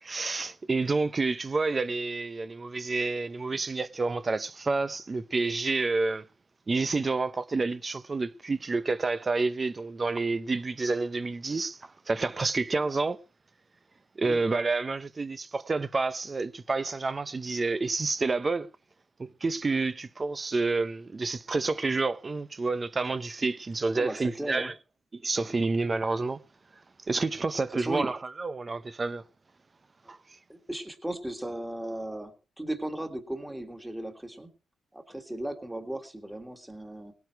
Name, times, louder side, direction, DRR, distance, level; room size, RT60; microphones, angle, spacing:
voice 1, 0.0-6.3 6.7-13.2 14.2-18.7 19.2-24.7 25.1-26.4 27.1-29.2 30.1-30.2, right 3 dB, 20° right, 0.7 m, -29 dB
voice 2, 23.9-24.7 27.7-28.1 30.5-34.5 34.9-37.1, right 1 dB, 5° right, 1.9 m, -36 dB
19.0 x 9.4 x 4.6 m
cardioid pair, 160°, 0 cm